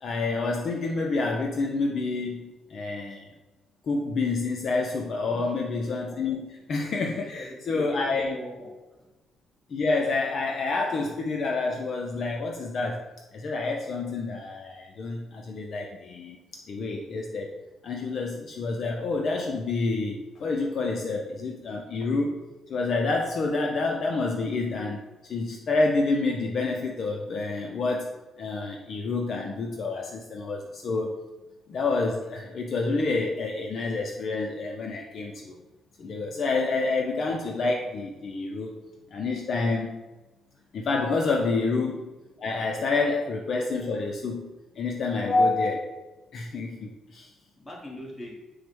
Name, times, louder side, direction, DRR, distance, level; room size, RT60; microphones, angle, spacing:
voice 1, 0.0-3.3 3.8-8.4 9.7-22.4 22.7-28.1 28.4-31.2 31.7-35.6 36.0-38.8 39.1-40.0 40.7-47.3, left 3 dB, 50° left, 0 dB, 0.4 m, -28 dB
voice 2, 7.1-8.7 47.6-48.3, left 1 dB, 15° left, -2 dB, 1.1 m, -41 dB
4.6 x 2.0 x 4.5 m, 1.1 s
cardioid pair, 125°, 0 cm